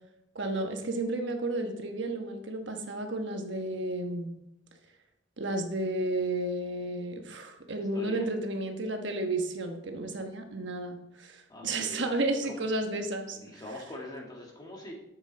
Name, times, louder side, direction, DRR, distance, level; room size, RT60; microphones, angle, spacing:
voice 1, 0.3-4.3 5.4-13.4, right 2 dB, 65° right, 4 dB, 1.2 m, -32 dB
voice 2, 7.9-8.3 11.5-12.0 12.5-12.6 13.3-14.9, left 1 dB, 20° left, -1 dB, 2.1 m, -43 dB
11.0 x 8.1 x 4.1 m, 0.83 s
head